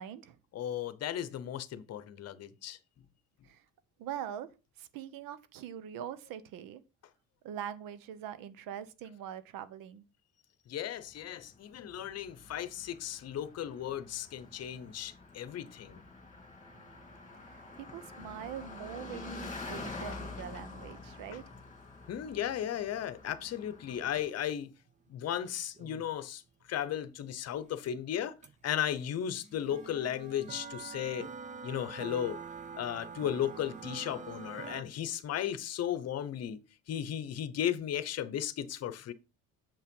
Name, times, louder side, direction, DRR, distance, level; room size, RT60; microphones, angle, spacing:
voice 1, 0.0-0.4 3.4-3.6 4.0-6.8 7.4-10.0 17.4-21.6, right 10 dB, 80° right, 1.0 m, -43 dB
voice 2, 0.5-2.8 10.7-16.0 22.1-24.7 25.1-26.4 26.7-28.3 28.6-31.3 31.6-32.4 32.7-36.6 36.9-39.1, left 10 dB, 50° left, 0.9 m, -35 dB
Car passing by, 11.1-24.3, left 3 dB, 20° left, 2.4 m, -47 dB
sound 1, 16.6-22.2 23.9-24.0 24.5-24.6 24.8-26.3 27.5-27.6 27.9-28.0 28.4-34.8, right 5 dB, 20° right, 0.7 m, -47 dB
7.2 x 5.6 x 5.3 m
cardioid pair, 135°, 33 cm